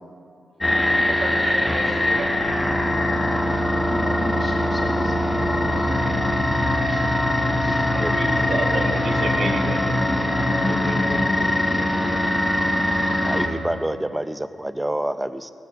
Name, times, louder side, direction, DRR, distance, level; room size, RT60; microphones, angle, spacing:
sound 1, 0.6-13.5, left 1 dB, 20° left, 1.4 m, -22 dB
voice 1, 0.9-2.3 7.7-9.9 10.2-11.0, right 3 dB, 60° right, 2 dB, 1.8 m, -31 dB
voice 2, 3.9-5.9 6.8-8.4 11.1-12.2, left 1 dB, 45° left, -1 dB, 2.5 m, -37 dB
voice 3, 13.2-15.5, right 1 dB, 10° right, 12 dB, 0.5 m, -27 dB
19.0 x 6.8 x 6.8 m, 2.4 s
cardioid pair, 65°, 0 cm